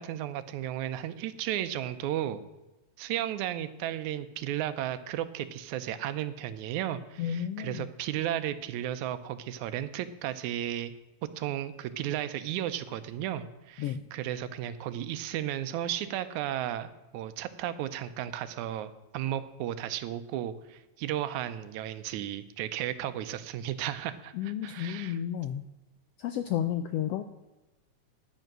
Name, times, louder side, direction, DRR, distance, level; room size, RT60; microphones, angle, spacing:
voice 1, 0.0-2.4 3.0-10.9 11.4-25.2, right 11 dB, 85° right, 12 dB, 2.1 m, -34 dB
voice 2, 7.2-7.9 13.8-14.0 24.3-25.6 26.2-27.2, left 10 dB, 80° left, 9 dB, 1.4 m, -32 dB
10.5 x 9.2 x 6.0 m, 1.0 s
omnidirectional pair, 3.3 m